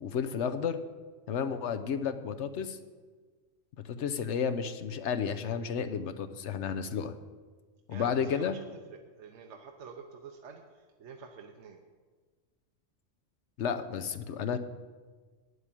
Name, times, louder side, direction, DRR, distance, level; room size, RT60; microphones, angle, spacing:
voice 1, 0.0-0.8 1.3-2.8 3.9-7.1 7.9-8.5 13.6-14.6, left 7 dB, 70° left, 9 dB, 1.0 m, -32 dB
voice 2, 7.9-11.8, right 5 dB, 70° right, 3 dB, 1.1 m, -48 dB
9.7 x 8.1 x 7.6 m, 1.4 s
omnidirectional pair, 1.3 m